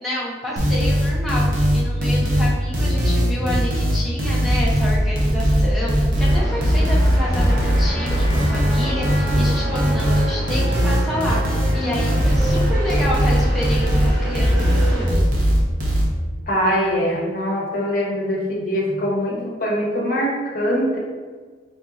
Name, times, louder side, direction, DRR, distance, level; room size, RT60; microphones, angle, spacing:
voice 1, 0.0-11.4 11.7-15.2, left 1 dB, ahead, -6 dB, 0.5 m, -29 dB
sound 1, 0.6-16.0, equal, 50° right, 0.8 m, -19 dB
sound 2, 6.1-15.1, right 1 dB, 85° right, 1.2 m, -30 dB
voice 2, 16.5-21.0, equal, 50° left, -3 dB, 0.9 m, -22 dB
4.2 x 3.9 x 2.4 m, 1.5 s
head